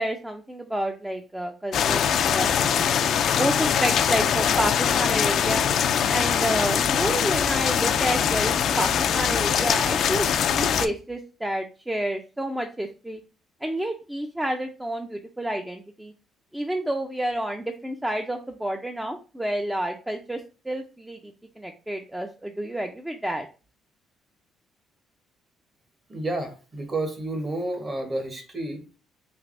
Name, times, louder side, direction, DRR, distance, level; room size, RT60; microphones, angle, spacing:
voice 1, 0.0-2.0 2.3-3.0 3.4-5.6 6.1-13.2 13.6-16.1 16.5-20.4 20.7-21.2 21.6-23.5, right 1 dB, 10° right, 4 dB, 0.4 m, -29 dB
sound 1, 1.7-10.9, left 8 dB, 65° left, 0.3 m, -22 dB
voice 2, 26.1-28.8, right 2 dB, 30° right, 5 dB, 1.0 m, -30 dB
3.3 x 3.2 x 2.5 m, 0.35 s
cardioid pair, 95°, 0 cm